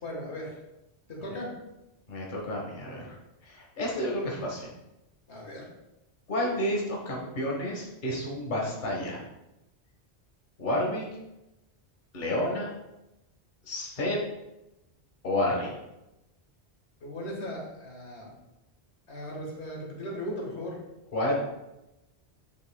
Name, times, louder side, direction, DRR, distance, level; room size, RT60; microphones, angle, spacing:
voice 1, 0.0-0.5 1.1-1.5 5.3-5.7 17.0-18.3 19.1-20.8, equal, 85° left, -2 dB, 1.9 m, -37 dB
voice 2, 2.1-3.2 3.4-4.7 6.3-9.2 10.6-11.0 12.1-12.7 13.7-14.2 15.2-15.7 21.1-21.3, left 1 dB, 45° left, -2 dB, 1.5 m, -30 dB
9.2 x 5.6 x 2.3 m, 0.94 s
omnidirectional pair, 1.1 m